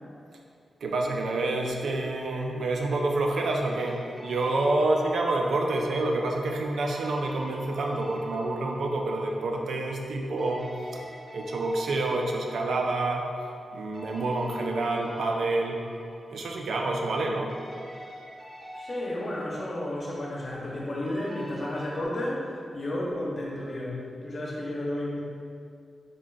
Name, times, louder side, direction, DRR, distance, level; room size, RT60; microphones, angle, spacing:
voice 1, 0.8-11.0 11.3-13.3 13.7-15.8 16.3-17.5, right 2 dB, 75° right, 1 dB, 0.4 m, -28 dB
sound 1, 3.4-10.1 10.4-17.2 17.5-22.1, equal, 20° right, 0.5 m, -46 dB
voice 2, 18.7-22.5 22.7-25.2, left 1 dB, 40° left, -4 dB, 0.6 m, -32 dB
3.7 x 2.2 x 3.7 m, 2.4 s
wide cardioid pair, 115°, 0 cm